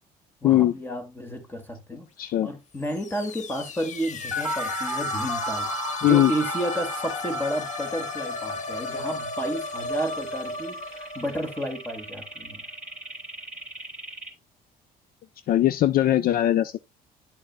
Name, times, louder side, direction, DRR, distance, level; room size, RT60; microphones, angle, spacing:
voice 1, 0.4-2.1 2.4-5.7 6.0-12.7, right 1 dB, 15° left, 2.2 m, -32 dB
voice 2, 2.2-2.5 6.0-6.3 15.5-16.8, left 13 dB, 65° left, 0.5 m, -20 dB
sound 1, 2.8-12.5, left 4 dB, 45° left, 0.9 m, -35 dB
sound 2, 4.3-14.3, right 2 dB, 5° right, 3.2 m, -35 dB
10.5 x 6.4 x 2.2 m
cardioid pair, 100°, 17 cm